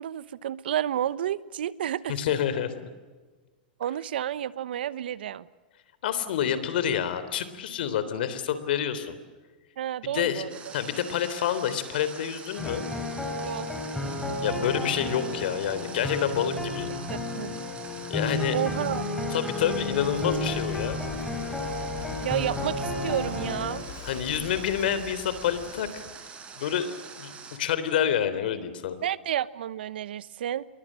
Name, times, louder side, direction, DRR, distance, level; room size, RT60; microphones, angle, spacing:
voice 1, 0.0-2.2 3.8-5.5 9.8-10.5 13.4-13.7 17.1-17.6 18.5-19.1 22.2-23.8 29.0-30.6, right 11 dB, 80° right, 17 dB, 1.1 m, -30 dB
voice 2, 2.1-2.9 6.0-9.2 10.1-10.4 10.7-12.9 14.4-16.9 18.1-18.6 19.3-21.0 24.0-26.0 26.6-27.3 27.6-29.0, left 9 dB, 70° left, 13 dB, 3.6 m, -28 dB
Water, 10.5-27.6, right 5 dB, 20° right, 5.4 m, -44 dB
sound 1, 12.6-23.8, left 2 dB, 5° left, 5.1 m, -32 dB
Walk footsteps / Wind / Waves surf, 19.4-26.1, left 7 dB, 50° left, 6.3 m, -42 dB
28.5 x 23.0 x 7.7 m, 1.3 s
hypercardioid pair, 140°, 5 cm